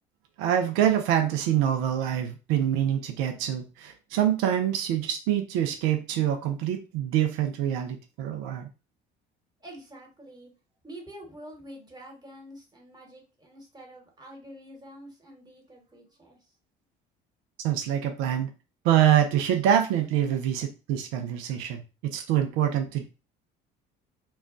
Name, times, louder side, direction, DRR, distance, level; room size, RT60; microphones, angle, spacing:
voice 1, 0.4-8.7 17.6-18.5 18.8-23.1, right 10 dB, 80° right, 6 dB, 0.6 m, -25 dB
voice 2, 9.6-10.5 10.8-16.4, right 1 dB, 20° right, 0 dB, 1.3 m, -47 dB
2.3 x 2.2 x 3.7 m, 0.31 s
supercardioid pair, 80°, 21 cm